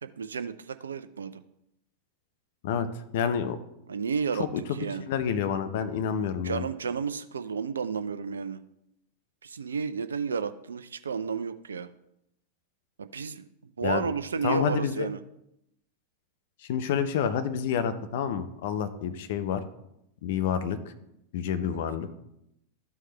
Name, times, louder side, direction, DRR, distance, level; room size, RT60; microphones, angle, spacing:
voice 1, 0.0-1.4 3.9-5.1 6.4-8.6 9.4-11.9 13.0-13.4 13.8-15.2 21.6-21.8, right 5 dB, 70° right, 11 dB, 0.4 m, -32 dB
voice 2, 3.1-3.6 4.3-4.6 5.0-6.6 13.8-14.0 14.4-15.1 16.6-19.6 20.2-20.8 21.3-22.1, left 8 dB, 55° left, 10 dB, 0.8 m, -28 dB
13.0 x 4.7 x 3.3 m, 0.81 s
figure-of-eight pair, 90°, 0 cm